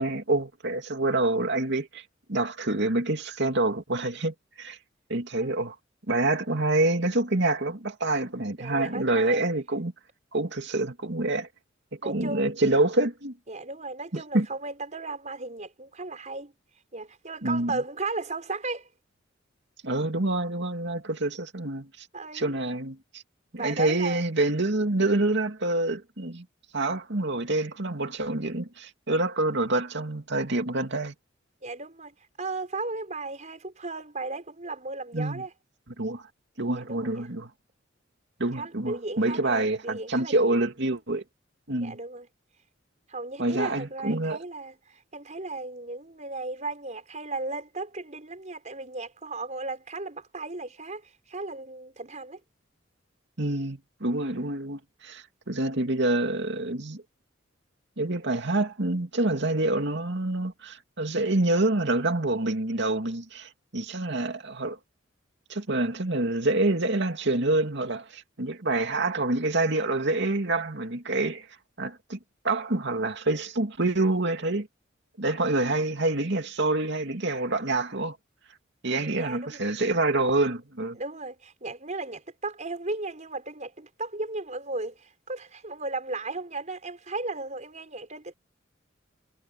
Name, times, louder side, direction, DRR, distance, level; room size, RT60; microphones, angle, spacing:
voice 1, 0.0-2.0 2.3-4.8 5.1-5.7 6.1-9.9 10.3-11.5 12.0-13.3 14.1-14.5 17.4-17.8 19.8-22.1 22.3-23.2 23.5-26.4 26.7-31.1 35.1-35.4 36.0-36.2 36.6-37.5 38.4-41.2 41.7-42.0 43.4-44.4 53.4-57.0 58.0-64.8 65.5-71.5 71.8-72.2 72.4-74.7 75.2-78.2 78.8-81.0, right 2 dB, 65° right, 2.6 m, -27 dB
voice 2, 8.6-9.5 12.0-12.5 13.5-16.5 16.9-18.9 22.1-22.5 23.6-24.2 31.6-35.5 36.7-37.3 38.5-40.6 41.8-42.3 43.1-52.4 78.9-79.6 80.9-88.3, right 3 dB, 40° right, 5.1 m, -35 dB
head